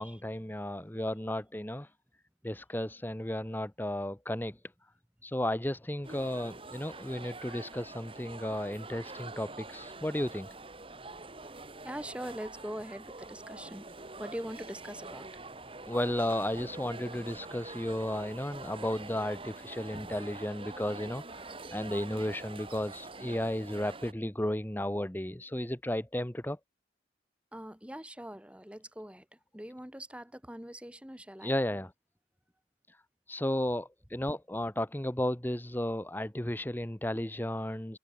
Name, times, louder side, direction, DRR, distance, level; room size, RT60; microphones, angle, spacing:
voice 1, 0.0-1.9 2.4-4.6 5.2-10.5 15.9-26.6 31.4-31.9 32.9-33.0 33.3-38.0, left 1 dB, 10° left, 0.9 m, -34 dB
sound 1, 6.0-24.1, right 3 dB, 30° right, 3.0 m, -45 dB
voice 2, 11.8-13.9 14.2-15.4 27.5-29.3 29.5-31.5, equal, 5° right, 2.2 m, -42 dB
head